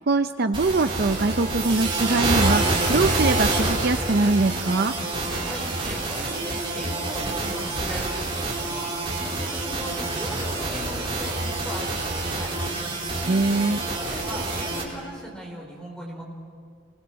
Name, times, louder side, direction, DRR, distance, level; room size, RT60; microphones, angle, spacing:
voice 1, 0.1-4.9 13.3-13.8, right 3 dB, 50° right, 9 dB, 0.6 m, -22 dB
sound 1, 0.5-14.8, right 2 dB, 25° right, 3.9 m, -27 dB
voice 2, 5.3-12.8 14.0-16.2, equal, 5° left, -1 dB, 4.7 m, -39 dB
27.5 x 20.5 x 6.3 m, 2.1 s
head